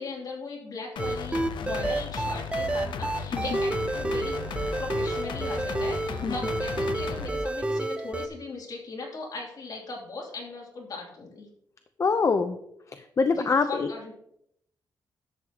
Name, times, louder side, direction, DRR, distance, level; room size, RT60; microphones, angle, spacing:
voice 1, 0.0-4.4 4.8-11.5 13.4-14.1, left 3 dB, 55° left, -2 dB, 2.8 m, -38 dB
sound 1, 1.0-7.3, left 6 dB, 85° left, 0.7 m, -36 dB
sound 2, 1.0-8.3, right 2 dB, 15° right, 0.6 m, -30 dB
voice 2, 12.0-12.6 12.9-13.9, left 4 dB, 40° left, 8 dB, 0.5 m, -24 dB
11.0 x 7.8 x 2.9 m, 0.74 s
wide cardioid pair, 120°, 8 cm